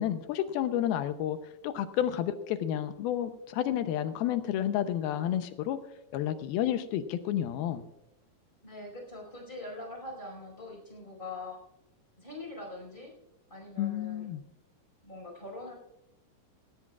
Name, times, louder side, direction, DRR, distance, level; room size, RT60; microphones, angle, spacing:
voice 1, 0.0-1.4 1.6-5.8 6.1-7.8 13.8-14.4, left 11 dB, 80° left, 10 dB, 2.5 m, -30 dB
voice 2, 8.6-11.6 12.2-13.1 13.5-14.3 15.0-15.7, left 2 dB, 10° left, -1 dB, 5.0 m, -43 dB
17.5 x 17.5 x 2.4 m, 0.87 s
omnidirectional pair, 4.6 m